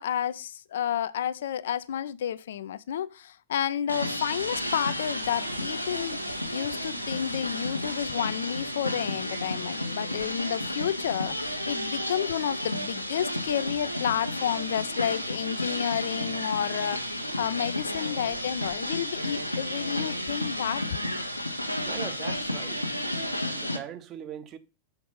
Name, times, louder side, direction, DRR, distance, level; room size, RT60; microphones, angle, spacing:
voice 1, 0.0-6.2 6.5-21.0, left 10 dB, 60° left, 0.4 m, -31 dB
sound 1, 3.9-23.8, left 1 dB, 90° left, 1.0 m, -32 dB
voice 2, 21.8-22.9 23.4-24.6, right 10 dB, 35° right, 0.9 m, -40 dB
7.3 x 5.1 x 5.2 m
figure-of-eight pair, 90°, 0 cm